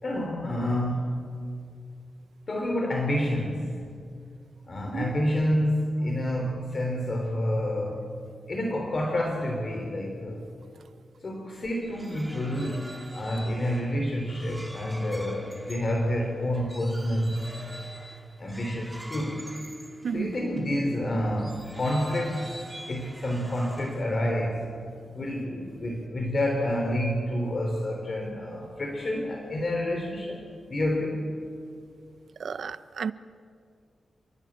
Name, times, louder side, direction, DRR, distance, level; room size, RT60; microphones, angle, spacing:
voice 1, 0.0-1.2 2.5-3.7 4.7-8.1 8.5-10.4 11.2-17.4 18.4-19.4 20.1-22.5 22.9-24.8 25.1-30.4 30.7-31.2, left 1 dB, 40° left, 2 dB, 3.5 m, -28 dB
sound 1, 11.6-20.7 21.3-24.3, right 1 dB, 10° right, 2.0 m, -45 dB
voice 2, 20.0-20.4 32.4-33.1, right 6 dB, 65° right, 13 dB, 0.9 m, -32 dB
28.5 x 22.5 x 8.8 m, 2.3 s
wide cardioid pair, 130°, 0 cm